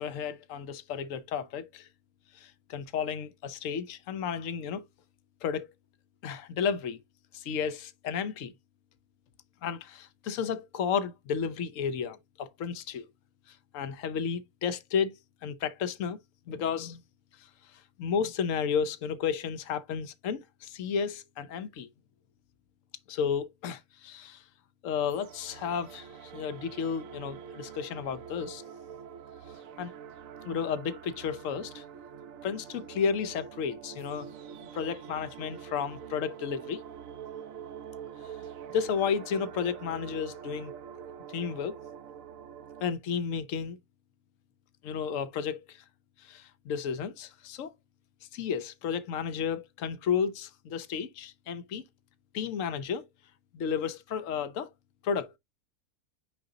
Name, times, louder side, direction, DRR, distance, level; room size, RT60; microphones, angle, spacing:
voice 1, 0.0-1.9 2.3-4.8 5.4-5.7 6.2-7.0 7.3-8.5 9.6-13.1 13.5-15.1 15.4-16.2 16.5-17.0 18.0-21.9 23.1-24.4 24.8-28.6 29.8-29.9 30.4-31.8 32.4-36.8 38.2-38.3 38.7-40.7 41.3-41.8 42.8-43.8 44.8-45.8 46.2-47.7 48.3-51.8 52.3-53.0 53.5-54.7 55.0-55.4, left 6 dB, 65° left, 1.1 m, -32 dB
sound 1, 25.1-42.9, right 8 dB, 70° right, 1.1 m, -45 dB
9.1 x 3.9 x 2.8 m
omnidirectional pair, 1.5 m